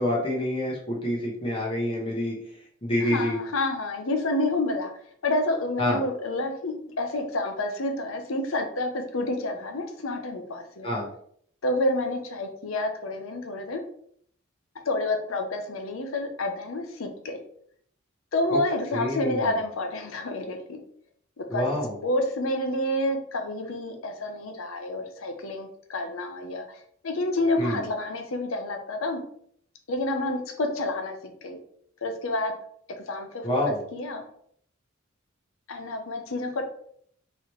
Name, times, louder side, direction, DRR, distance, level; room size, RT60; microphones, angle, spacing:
voice 1, 0.0-2.4 2.8-3.4 5.8-6.0 10.8-11.1 18.5-18.6 18.9-19.5 21.5-21.9 27.6-27.8 33.4-33.8, left 1 dB, 25° left, -3 dB, 0.9 m, -27 dB
voice 2, 3.0-4.9 5.2-10.9 11.6-13.8 14.8-17.4 18.3-20.6 21.4-21.7 22.0-26.8 27.0-29.2 29.9-31.2 31.4-31.6 32.0-32.5 33.1-33.6 33.9-34.2 35.7-36.6, left 2 dB, 75° left, 5 dB, 0.7 m, -29 dB
4.0 x 3.0 x 3.1 m, 0.64 s
head